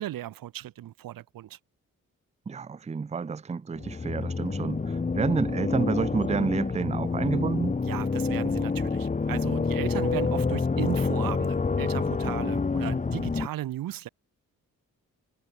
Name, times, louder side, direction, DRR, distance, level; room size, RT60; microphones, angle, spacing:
voice 1, 0.0-1.6 7.8-14.1, right 13 dB, 90° right, 1.6 m, -36 dB
voice 2, 2.5-7.8, right 5 dB, 20° right, 0.6 m, -29 dB
sound 1, 3.8-13.5, left 4 dB, 25° left, 0.9 m, -28 dB
cardioid pair, 65°, 33 cm